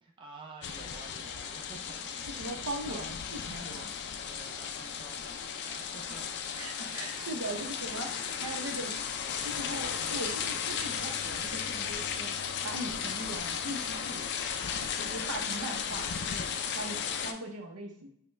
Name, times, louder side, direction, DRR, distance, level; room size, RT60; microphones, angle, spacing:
voice 1, 0.0-3.1 3.4-6.6, right 3 dB, 20° right, 0 dB, 0.4 m, -51 dB
sound 1, 0.6-17.3, left 7 dB, 50° left, 0.3 m, -35 dB
voice 2, 2.3-3.8 6.6-9.0 9.3-12.3 12.6-14.2 14.9-18.1, right 1 dB, 80° right, 3 dB, 0.8 m, -40 dB
5.2 x 2.2 x 3.2 m, 0.71 s
head